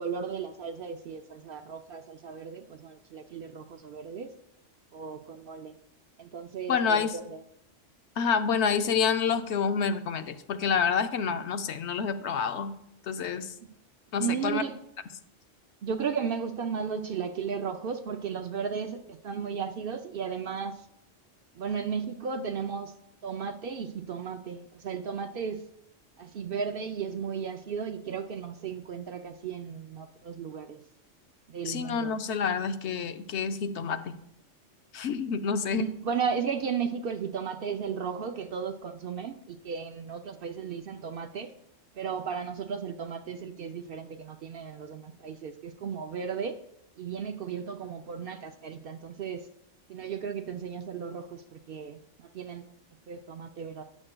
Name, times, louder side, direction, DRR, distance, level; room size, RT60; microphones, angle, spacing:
voice 1, 0.0-4.3 4.9-5.8 6.2-7.4 14.2-14.7 15.8-20.9 21.6-22.9 23.2-25.6 26.2-30.8 31.5-32.2 35.7-41.5 42.0-46.6 47.0-49.5 49.9-52.7 53.1-53.8, right 6 dB, 60° right, 7 dB, 0.6 m, -35 dB
voice 2, 6.7-7.2 8.2-12.7 13.1-13.5 14.1-14.6 31.6-34.1 34.9-35.9, left 6 dB, 70° left, 9 dB, 0.9 m, -28 dB
12.5 x 8.8 x 2.2 m, 0.78 s
omnidirectional pair, 1.2 m